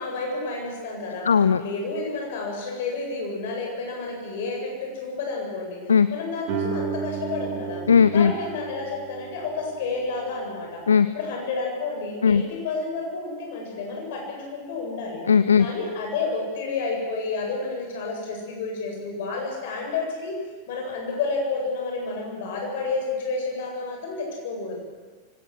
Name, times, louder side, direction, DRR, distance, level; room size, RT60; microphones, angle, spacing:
voice 1, 0.0-1.3 1.6-7.8 8.1-10.8 11.1-15.2 15.6-20.4 20.7-24.8, left 3 dB, 60° left, 0 dB, 7.9 m, -30 dB
voice 2, 1.2-1.6 5.9-6.1 7.9-8.3 10.9-11.1 12.2-12.4 15.3-15.7, left 6 dB, 75° left, 14 dB, 0.7 m, -17 dB
Guitar, 6.5-11.8, right 6 dB, 45° right, 6.3 m, -35 dB
24.0 x 17.5 x 7.9 m, 1.4 s
figure-of-eight pair, 90°, 0 cm